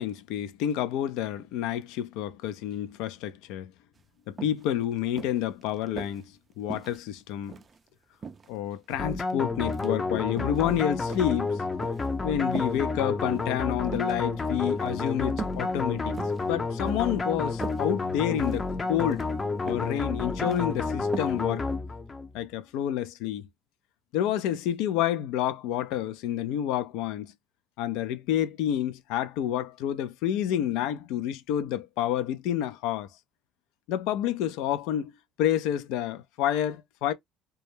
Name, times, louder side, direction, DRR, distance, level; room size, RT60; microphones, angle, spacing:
voice 1, 0.0-3.7 4.3-7.5 8.5-11.6 12.2-16.2 16.5-19.2 19.6-21.6 22.3-23.5 24.1-27.3 27.8-33.1 33.9-35.1 35.4-37.1, left 11 dB, 75° left, 0.4 m, -29 dB
sound 1, 4.0-4.1 4.4-4.6 5.2-6.2 6.7-7.8 8.2-9.1 9.6-9.9 10.3-10.6 11.1-12.1 12.5-12.8 13.2-13.5 13.9-14.2 14.7-14.9 15.4-15.7 16.0-16.4 16.9-17.1 17.4-17.8 18.3-18.7 19.0-19.2 19.7-20.0 20.2-20.6 21.1-21.4 21.7-21.8, right 5 dB, 35° right, 0.4 m, -39 dB
sound 2, 9.0-22.3, left 3 dB, 25° left, 0.5 m, -30 dB
2.3 x 2.0 x 3.0 m
supercardioid pair, 80°, 0 cm